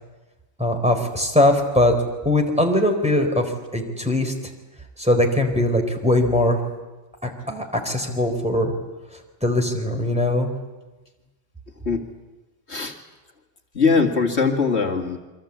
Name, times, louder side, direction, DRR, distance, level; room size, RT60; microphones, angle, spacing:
voice 1, 0.6-1.9 2.2-4.3 5.0-6.6 7.2-8.7 9.4-10.5, left 1 dB, 5° right, 2 dB, 4.2 m, -21 dB
voice 2, 13.7-15.2, left 4 dB, 65° left, 2 dB, 2.2 m, -21 dB
28.0 x 24.5 x 8.5 m, 1.2 s
omnidirectional pair, 1.2 m